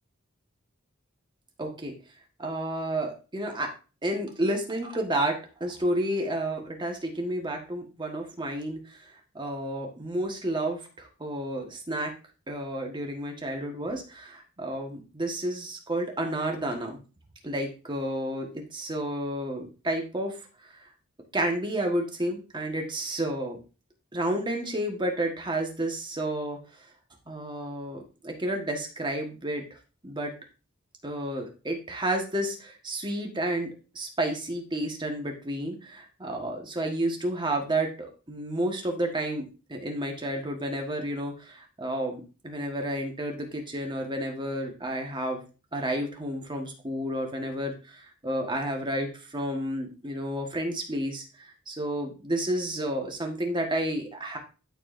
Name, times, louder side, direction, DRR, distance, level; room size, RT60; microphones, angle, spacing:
voice 1, 1.6-1.9 2.4-3.7 4.0-9.0 9.3-12.1 12.5-17.0 17.4-20.4 21.3-23.6 24.1-26.6 27.3-29.6 30.0-30.3 31.0-33.7 33.9-45.4 45.7-51.2 51.7-54.4, right 1 dB, 20° right, 2 dB, 1.5 m, -31 dB
12.0 x 4.7 x 2.6 m, 0.33 s
head